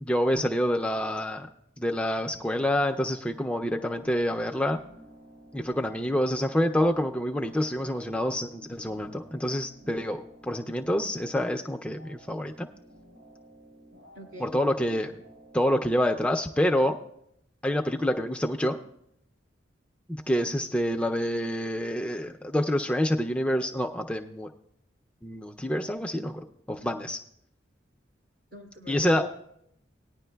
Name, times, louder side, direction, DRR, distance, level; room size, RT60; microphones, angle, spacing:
voice 1, 0.0-1.5 1.8-4.8 5.5-12.7 14.4-15.1 15.5-17.0 17.6-18.8 20.1-24.5 25.2-27.2 28.9-29.2, equal, 5° left, 4 dB, 0.3 m, -27 dB
sound 1, 3.6-16.2, equal, 90° right, 4.3 m, -53 dB
voice 2, 14.1-15.0 26.8-26.9 28.5-29.3, left 1 dB, 70° right, 2 dB, 2.3 m, -43 dB
19.0 x 9.9 x 2.2 m, 0.75 s
head